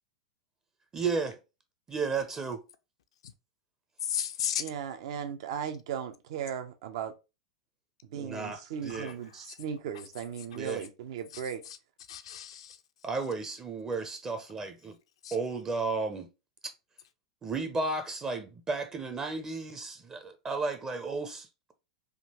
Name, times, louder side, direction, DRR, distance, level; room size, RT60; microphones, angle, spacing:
voice 1, 0.9-1.4 1.9-2.6 8.1-9.4 10.5-10.8 13.0-14.9 15.3-16.3 17.4-21.5, right 4 dB, 20° right, 0.5 m, -33 dB
voice 2, 4.0-4.7 8.9-9.6 9.9-10.1 10.4-10.6 11.3-11.8 12.1-13.1 15.2-15.4, left 9 dB, 75° left, 0.5 m, -37 dB
voice 3, 4.6-7.1 8.1-11.6, right 8 dB, 65° right, 0.6 m, -37 dB
3.6 x 2.4 x 2.8 m
hypercardioid pair, 105°, 3 cm